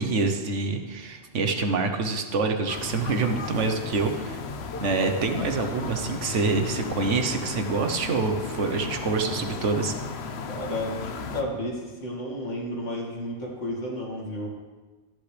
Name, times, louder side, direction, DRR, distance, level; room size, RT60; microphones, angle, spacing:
voice 1, 0.0-4.4 4.8-10.0, right 4 dB, 80° right, 5 dB, 1.3 m, -26 dB
sound 1, 2.7-11.4, left 5 dB, 65° left, 1.0 m, -35 dB
voice 2, 10.5-14.5, left 1 dB, 85° left, -2 dB, 2.6 m, -32 dB
13.0 x 11.0 x 3.4 m, 1.3 s
omnidirectional pair, 1.2 m